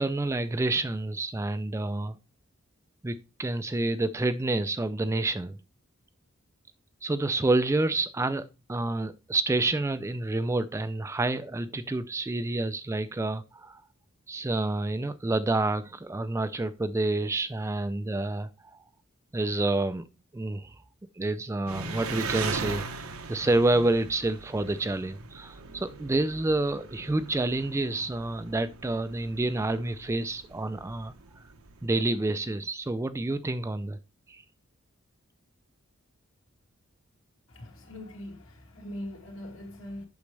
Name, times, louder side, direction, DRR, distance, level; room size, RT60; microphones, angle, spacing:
voice 1, 0.0-2.2 3.0-5.6 7.0-13.8 14.3-18.8 19.3-20.1 20.3-20.7 21.2-23.0 23.3-31.1 31.8-34.0 34.3-34.4, right 2 dB, 15° right, 0.3 m, -28 dB
Engine, 21.7-31.9, right 4 dB, 85° right, 0.9 m, -39 dB
voice 2, 37.5-40.1, left 1 dB, 65° left, 2.5 m, -41 dB
8.3 x 6.2 x 3.3 m
head